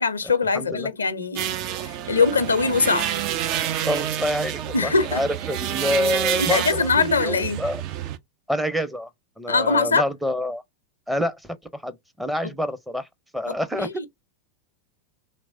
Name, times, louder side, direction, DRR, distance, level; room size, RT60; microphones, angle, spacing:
voice 1, 0.0-1.6 1.8-3.1 4.7-5.2 6.4-7.6 9.5-10.0 13.5-14.1, left 4 dB, 85° left, 0.5 m, -22 dB
voice 2, 0.5-0.9 3.9-7.8 8.5-9.1 9.4-10.6 11.1-13.1 13.3-14.1, left 1 dB, 5° right, 0.6 m, -27 dB
sound 1, 1.4-8.2, right 10 dB, 50° right, 0.4 m, -28 dB
3.2 x 3.1 x 2.6 m
figure-of-eight pair, 90°, 0 cm